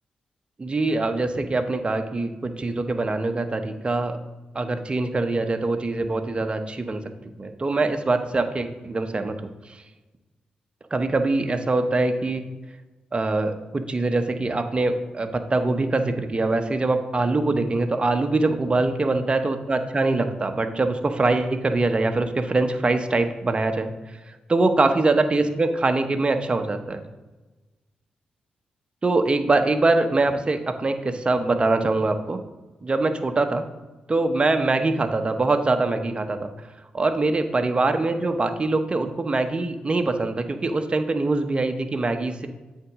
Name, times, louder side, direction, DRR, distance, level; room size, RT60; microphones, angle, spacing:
voice 1, 0.6-4.2 4.5-7.0 7.4-9.3 9.7-9.8 10.9-12.4 13.1-23.9 24.3-27.0 29.0-32.4 32.8-33.6 34.1-36.5 36.9-42.5, right 2 dB, 35° right, 6 dB, 0.9 m, -23 dB
8.1 x 3.7 x 6.1 m, 1.2 s
supercardioid pair, 50°, 3 cm